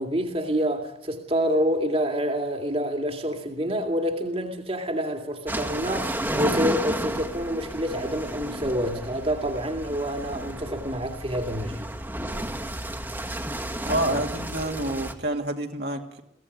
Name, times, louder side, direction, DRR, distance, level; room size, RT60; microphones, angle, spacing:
voice 1, 0.0-11.8, equal, 35° right, 2.3 m, -27 dB
sound 1, 5.5-15.1, right 1 dB, 10° right, 1.7 m, -32 dB
voice 2, 13.9-16.2, right 1 dB, 60° right, 2.5 m, -28 dB
23.0 x 16.5 x 9.5 m
head